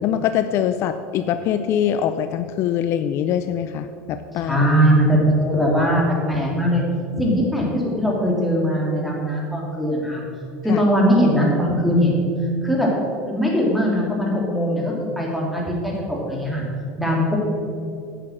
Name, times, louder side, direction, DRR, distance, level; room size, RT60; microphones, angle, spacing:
voice 1, 0.0-4.6 10.7-10.8, left 9 dB, 50° left, 10 dB, 0.5 m, -23 dB
voice 2, 4.4-6.8 7.2-10.2 10.6-12.3 12.6-12.9 13.2-16.6 17.0-17.4, equal, ahead, -3 dB, 3.1 m, -20 dB
10.0 x 6.8 x 7.3 m, 2.4 s
supercardioid pair, 125°, 6 cm